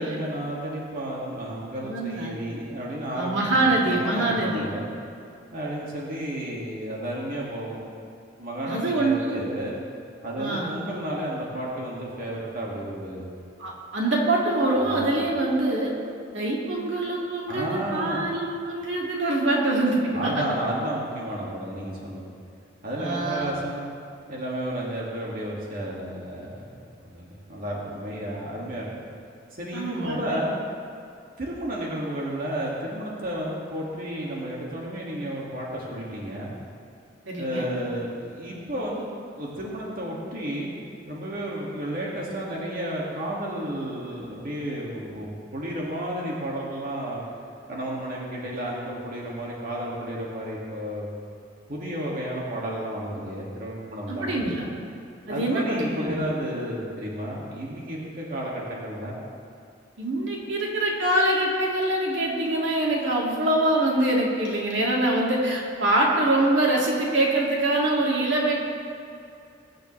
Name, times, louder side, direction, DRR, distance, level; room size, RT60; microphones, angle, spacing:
voice 1, 0.0-4.9 5.5-7.8 8.4-9.8 10.2-13.3 14.9-15.1 17.5-18.2 20.1-22.3 22.8-23.8 24.3-28.9 29.5-30.6 31.4-36.5 37.4-39.1 39.3-40.7 41.1-47.2 47.7-51.1 51.7-54.5 55.3-59.2, right 1 dB, 50° right, -4 dB, 2.2 m, -32 dB
voice 2, 1.8-2.4 3.1-4.7 8.6-9.4 10.4-10.8 13.6-15.9 16.3-20.4 23.0-23.6 29.7-30.4 37.3-37.6 54.1-54.7 55.3-56.2 60.0-68.6, right 1 dB, 75° right, -3 dB, 2.4 m, -24 dB
22.0 x 10.5 x 3.3 m, 2.5 s
head